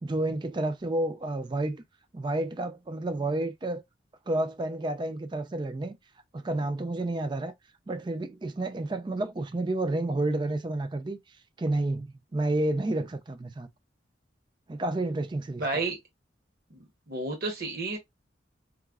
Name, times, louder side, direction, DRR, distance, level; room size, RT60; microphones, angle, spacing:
voice 1, 0.0-1.8 2.1-3.8 4.3-6.0 6.3-7.5 7.9-11.2 11.6-13.7 14.7-15.6, right 2 dB, 25° right, 0.3 m, -30 dB
voice 2, 15.6-16.0 16.7-18.0, right 3 dB, 50° right, 0.8 m, -31 dB
4.7 x 2.0 x 2.3 m
head